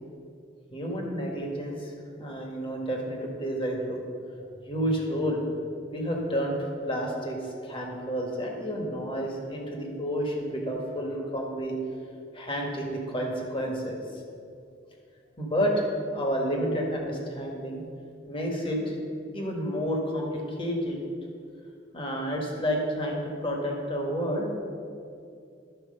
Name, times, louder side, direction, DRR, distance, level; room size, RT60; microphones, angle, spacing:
voice 1, 0.7-1.9 2.2-4.0 4.6-5.4 5.9-11.7 12.3-14.0 15.4-17.8 18.3-19.0 19.3-21.0 21.9-24.5, equal, 30° left, 0 dB, 1.5 m, -30 dB
11.5 x 4.6 x 6.6 m, 2.4 s
head